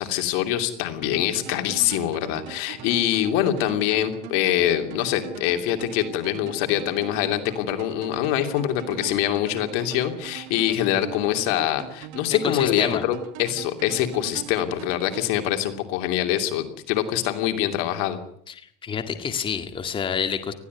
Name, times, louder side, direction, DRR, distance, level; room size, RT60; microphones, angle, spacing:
voice 1, 0.0-18.2, left 12 dB, 75° left, 6 dB, 2.9 m, -24 dB
sound 1, 1.0-16.1, right 12 dB, 75° right, 2.0 m, -41 dB
voice 2, 12.3-13.0 18.5-20.5, left 6 dB, 25° left, 7 dB, 2.0 m, -28 dB
21.0 x 15.5 x 9.6 m, 0.70 s
cardioid pair, 135°, 20 cm